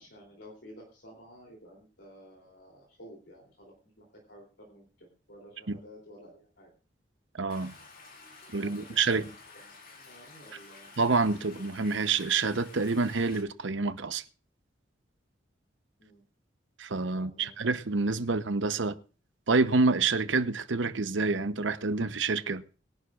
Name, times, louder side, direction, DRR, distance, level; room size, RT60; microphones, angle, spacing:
voice 1, 0.0-6.7 8.6-9.3 9.5-10.9 16.0-16.2 17.1-17.7, equal, 70° left, 3.3 m, -52 dB
voice 2, 7.4-7.7 8.5-9.3 11.0-14.2 16.8-19.0 19.5-22.6, right 4 dB, 80° right, 0.9 m, -27 dB
Stream, 7.5-13.4, left 4 dB, 45° left, 2.6 m, -51 dB
21.5 x 11.0 x 2.5 m
head